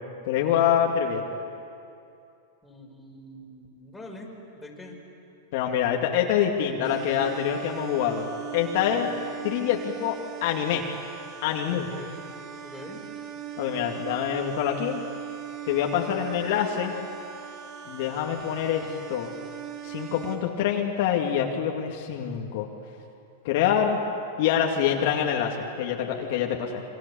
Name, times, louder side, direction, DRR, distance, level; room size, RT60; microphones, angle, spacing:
voice 1, 0.3-1.2 5.5-9.1 9.4-10.2 10.4-10.8 11.4-11.9 13.6-15.0 15.7-16.9 17.9-19.3 19.8-22.7 23.4-24.0 24.4-26.8, left 9 dB, 55° left, 1 dB, 2.3 m, -25 dB
voice 2, 2.6-5.0 8.9-9.1 11.7-12.2 12.6-13.0, left 1 dB, 5° left, -2 dB, 5.1 m, -44 dB
sound 1, 6.8-20.4, right 9 dB, 35° right, 4.1 m, -39 dB
27.5 x 24.5 x 7.1 m, 2.6 s
supercardioid pair, 140°, 0 cm